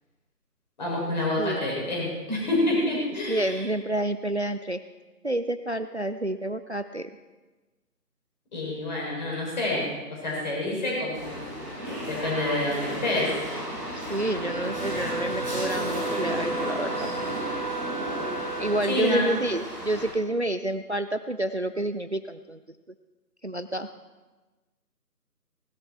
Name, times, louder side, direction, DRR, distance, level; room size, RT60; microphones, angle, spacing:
voice 1, 0.8-3.6 8.5-11.5 12.1-13.4 18.9-19.3, left 1 dB, 30° left, -4 dB, 6.2 m, -28 dB
voice 2, 3.3-4.8 5.2-7.1 13.9-17.1 18.6-22.6 23.4-23.9, right 1 dB, 45° right, 11 dB, 0.5 m, -29 dB
sound 1, 11.1-20.1, equal, 5° left, 5.1 m, -33 dB
Wind instrument woodwind instrument, 14.4-19.1, right 4 dB, 75° right, 1.2 m, -34 dB
19.0 x 13.0 x 4.5 m, 1.2 s
figure-of-eight pair, 160°, 48 cm